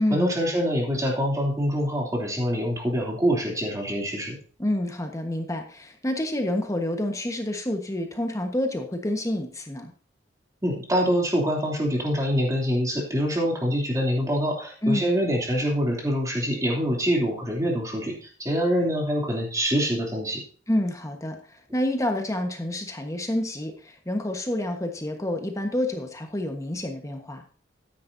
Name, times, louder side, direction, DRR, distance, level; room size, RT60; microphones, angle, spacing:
voice 1, 0.0-4.4 10.6-20.4, equal, 20° right, -1 dB, 2.9 m, -25 dB
voice 2, 4.6-9.9 14.8-15.1 20.7-21.4 21.7-27.4, left 1 dB, 15° left, 4 dB, 1.3 m, -28 dB
13.0 x 10.0 x 2.7 m, 0.42 s
head